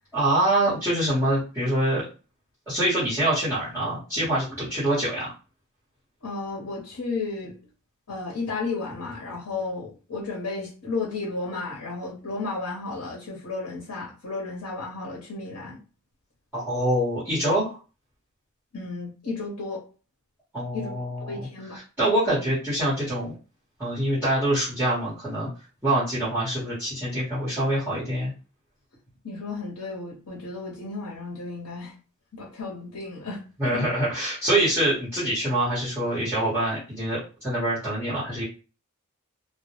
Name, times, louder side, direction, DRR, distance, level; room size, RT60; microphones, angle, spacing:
voice 1, 0.1-2.1 2.7-5.3 16.5-17.8 20.5-21.5 22.0-23.3 23.8-25.5 25.8-28.3 33.6-38.4, right 1 dB, 10° right, -12 dB, 1.0 m, -25 dB
voice 2, 6.2-7.6 8.1-15.8 18.7-19.8 20.7-20.9 21.3-21.8 29.2-31.9 32.3-33.4, left 3 dB, 85° left, -3 dB, 0.8 m, -33 dB
2.1 x 2.1 x 2.9 m, 0.34 s
head